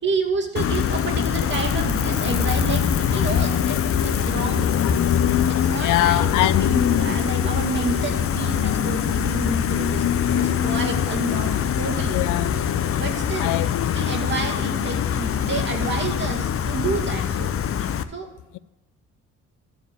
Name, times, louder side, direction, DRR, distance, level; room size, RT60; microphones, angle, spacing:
voice 1, 0.0-4.7 5.5-11.5 11.8-12.2 13.0-13.5 13.9-17.5 18.1-18.3, right 4 dB, 40° right, 2.3 m, -29 dB
Gull seagull, 0.6-18.0, left 8 dB, 50° left, 0.7 m, -23 dB
voice 2, 5.8-6.7 12.1-12.5 13.4-13.9, left 16 dB, 85° left, 0.5 m, -23 dB
13.5 x 5.0 x 6.7 m
cardioid pair, 90°, 30 cm